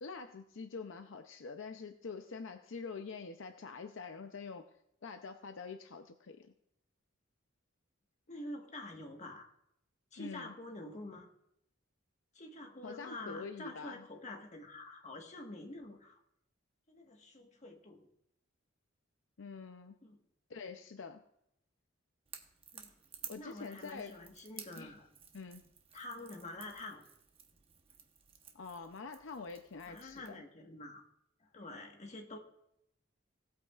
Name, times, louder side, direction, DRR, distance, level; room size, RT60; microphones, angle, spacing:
voice 1, 0.0-4.6 5.0-6.5 10.2-10.5 12.8-14.0 19.4-20.0 20.5-21.2 23.3-24.1 24.8-24.9 25.3-25.6 28.5-30.4, left 4 dB, 70° left, 7 dB, 0.6 m, -45 dB
voice 2, 8.3-9.5 10.1-11.3 12.3-16.2 16.9-18.1 20.0-20.2 22.7-22.9 23.4-25.1 25.9-27.0 29.9-31.0 31.4-32.4, left 2 dB, 35° left, 1 dB, 1.4 m, -47 dB
Crackle / Crack, 22.3-30.4, right 7 dB, 30° right, 0.9 m, -54 dB
18.0 x 8.5 x 2.4 m, 0.78 s
head